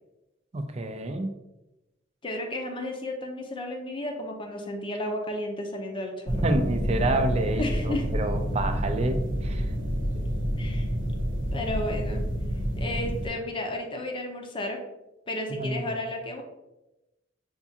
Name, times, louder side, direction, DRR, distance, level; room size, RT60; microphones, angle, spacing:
voice 1, 0.5-1.3 6.4-9.6 15.5-15.8, right 2 dB, 35° right, 7 dB, 0.4 m, -28 dB
voice 2, 2.2-6.5 7.6-8.1 10.6-10.9 11.5-12.2 12.8-14.8 15.3-16.4, left 1 dB, 25° left, 2 dB, 0.6 m, -33 dB
sound 1, 6.3-13.3, equal, 85° right, 0.9 m, -28 dB
7.0 x 2.4 x 2.8 m, 0.96 s
head